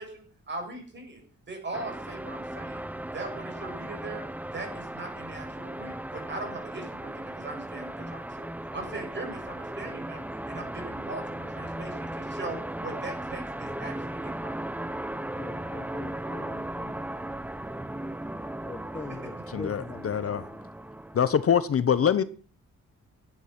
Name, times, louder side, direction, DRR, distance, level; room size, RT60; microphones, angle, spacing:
voice 1, 0.0-2.9 3.1-4.2 4.5-8.5 8.7-14.6 18.9-19.3, right 2 dB, 35° right, 7.4 m, -40 dB
sound 1, 1.7-21.7, right 1 dB, 5° right, 0.8 m, -37 dB
voice 2, 15.4-17.1 18.6-19.3 19.6-20.7, left 3 dB, 15° left, 1.3 m, -42 dB
voice 3, 19.5-20.5 21.1-22.2, left 8 dB, 50° left, 0.9 m, -24 dB
16.5 x 12.0 x 5.9 m
wide cardioid pair, 145°, 30 cm